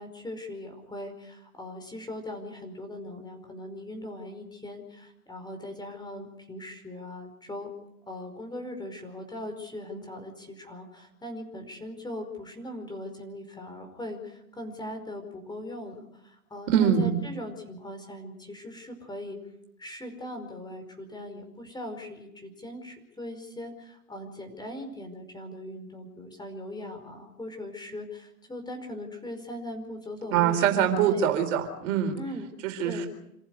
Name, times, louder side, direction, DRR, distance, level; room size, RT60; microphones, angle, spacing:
voice 1, 0.0-7.7 8.1-19.4 19.8-31.3 32.1-32.5 32.8-33.0, left 1 dB, 10° left, 5 dB, 5.1 m, -40 dB
voice 2, 16.7-17.2 30.3-32.2 32.6-33.1, right 8 dB, 60° right, 5 dB, 4.2 m, -24 dB
27.0 x 15.0 x 8.1 m, 0.80 s
hypercardioid pair, 100°, 43 cm